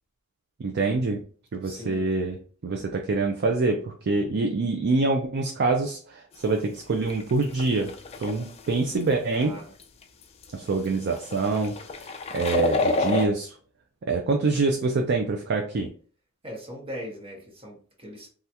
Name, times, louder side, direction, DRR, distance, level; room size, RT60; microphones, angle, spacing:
voice 1, 0.6-1.2 1.5-2.4 2.6-9.5 10.5-13.6 14.1-15.9, right 3 dB, 50° right, 3 dB, 0.4 m, -25 dB
voice 2, 1.6-2.1 9.3-9.7 16.4-18.3, equal, 25° right, -2 dB, 1.0 m, -39 dB
sound 1, 6.5-6.6 7.1-9.1 9.8-10.0 10.4-10.5 10.8-10.9 11.1-13.3, left 3 dB, 30° left, 0.4 m, -28 dB
3.4 x 2.4 x 2.7 m, 0.42 s
head